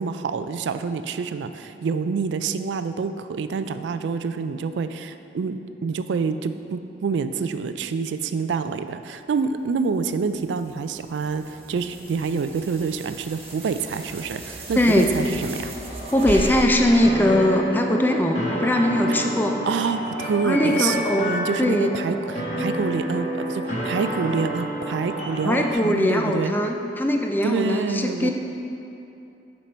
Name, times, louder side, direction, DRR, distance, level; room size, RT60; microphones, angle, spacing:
voice 1, 0.0-15.7 19.1-19.2 19.7-26.5 27.4-28.3, right 5 dB, 75° right, 10 dB, 0.3 m, -27 dB
sound 1, 9.8-18.4, right 1 dB, 35° right, 0.9 m, -36 dB
voice 2, 14.8-15.1 16.1-19.6 20.4-21.9 25.4-28.3, left 1 dB, 10° left, 3 dB, 0.3 m, -21 dB
sound 2, 16.8-25.7, right 1 dB, 40° left, 1.3 m, -29 dB
7.2 x 5.3 x 4.4 m, 2.8 s
head